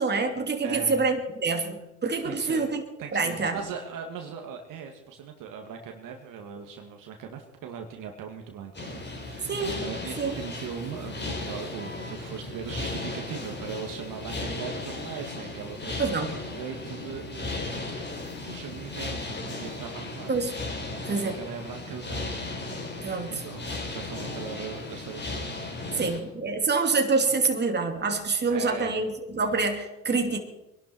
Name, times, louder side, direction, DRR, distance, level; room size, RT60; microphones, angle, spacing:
voice 1, 0.0-2.8 3.1-3.6 9.5-9.8 10.2-10.3 16.0-16.3 20.3-20.5 21.1-21.3 23.0-23.4 25.9-30.4, right 4 dB, 25° right, 4 dB, 2.9 m, -26 dB
voice 2, 0.6-1.0 2.2-2.6 3.0-20.3 21.1-22.4 23.0-26.2 28.5-29.0, right 7 dB, 55° right, 3 dB, 2.3 m, -40 dB
sound 1, 8.7-26.2, left 2 dB, 25° left, 4.3 m, -36 dB
23.5 x 12.0 x 4.6 m, 0.98 s
hypercardioid pair, 75°, 39 cm